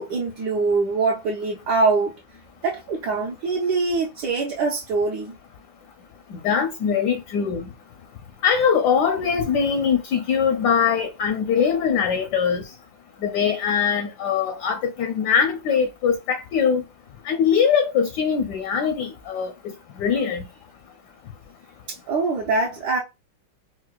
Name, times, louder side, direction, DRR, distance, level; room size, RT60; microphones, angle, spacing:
voice 1, 0.0-2.1 2.6-5.4 21.9-23.0, right 3 dB, 70° right, 1.1 m, -23 dB
voice 2, 6.4-7.7 8.4-12.6 13.2-16.8 17.3-19.7 20.0-20.4, left 7 dB, 75° left, 1.0 m, -22 dB
4.5 x 2.1 x 2.2 m
omnidirectional pair, 2.2 m